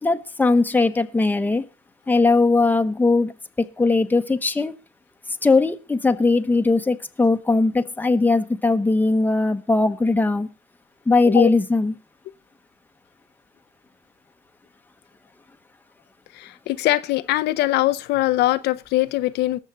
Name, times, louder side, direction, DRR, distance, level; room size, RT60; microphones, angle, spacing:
voice 1, 0.0-1.6 2.1-3.3 3.6-4.7 5.4-10.5 11.1-11.9, left 3 dB, 10° left, 1.1 m, -19 dB
voice 2, 16.3-19.6, left 16 dB, 80° left, 0.7 m, -22 dB
19.5 x 7.4 x 3.9 m
cardioid pair, 110°, 17 cm